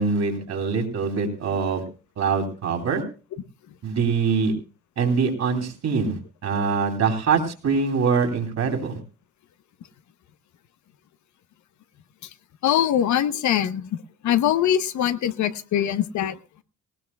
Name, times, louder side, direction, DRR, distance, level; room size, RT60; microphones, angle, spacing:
voice 1, 0.0-1.8 2.2-3.0 3.8-4.5 5.0-9.0, right 5 dB, 60° right, 3 dB, 2.9 m, -24 dB
voice 2, 12.6-13.9 14.2-16.4, left 10 dB, 70° left, 12 dB, 0.9 m, -22 dB
18.5 x 18.0 x 2.3 m, 0.34 s
cardioid pair, 90°, 30 cm